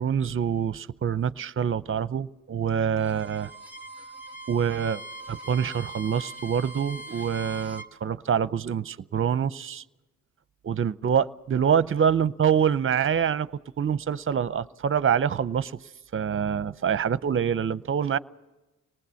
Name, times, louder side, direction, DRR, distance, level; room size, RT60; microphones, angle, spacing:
voice 1, 0.0-3.5 4.5-5.0 5.3-9.8 10.6-13.5 13.8-15.8 16.1-18.2, right 8 dB, 40° right, 0.6 m, -25 dB
Bowed string instrument, 2.9-7.9, right 2 dB, 5° right, 1.8 m, -41 dB
25.5 x 19.5 x 7.0 m
cardioid pair, 60°, 33 cm